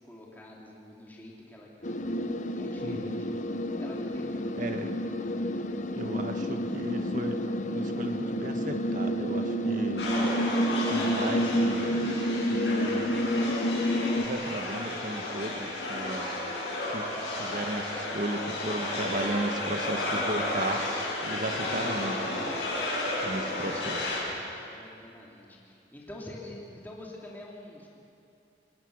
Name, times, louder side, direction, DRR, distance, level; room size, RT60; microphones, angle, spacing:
voice 1, 0.0-2.0 2.5-3.3 3.8-4.9 23.3-27.9, left 1 dB, 10° left, -3 dB, 2.8 m, -47 dB
sound 1, 1.8-14.3, equal, 45° left, 0.9 m, -29 dB
voice 2, 2.8-3.2 4.5-5.0 6.0-10.1 10.9-13.2 14.2-16.3 16.9-17.1 17.4-20.9 21.2-22.5 23.2-24.2, right 1 dB, 45° right, 6 dB, 1.5 m, -35 dB
sound 2, 10.0-24.2, left 1 dB, 65° left, 7.7 m, -32 dB
29.0 x 19.0 x 6.5 m, 2.6 s
head